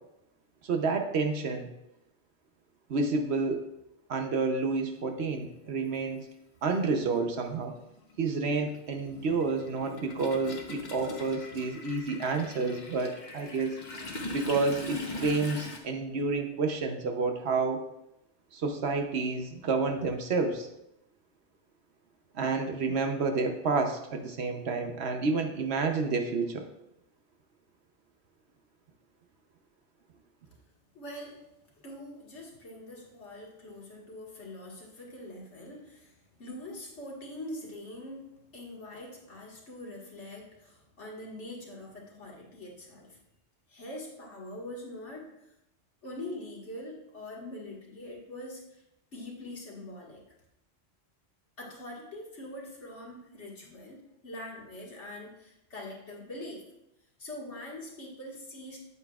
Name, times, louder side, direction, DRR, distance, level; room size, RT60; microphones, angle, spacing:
voice 1, 0.6-1.7 2.9-3.7 4.1-6.2 6.6-7.7 8.2-13.8 14.3-17.8 18.5-20.7 22.3-26.7, right 4 dB, 65° right, 4 dB, 1.1 m, -29 dB
Toilet flush, 5.3-5.4 6.7-6.8 7.2-15.8, left 2 dB, 45° left, 1.1 m, -41 dB
voice 2, 30.9-31.5 31.7-43.2 43.7-45.5 46.0-48.8 49.1-50.2 51.6-56.7 57.2-58.8, left 1 dB, 75° left, -3 dB, 2.1 m, -43 dB
8.9 x 8.3 x 2.4 m, 0.86 s
omnidirectional pair, 1.2 m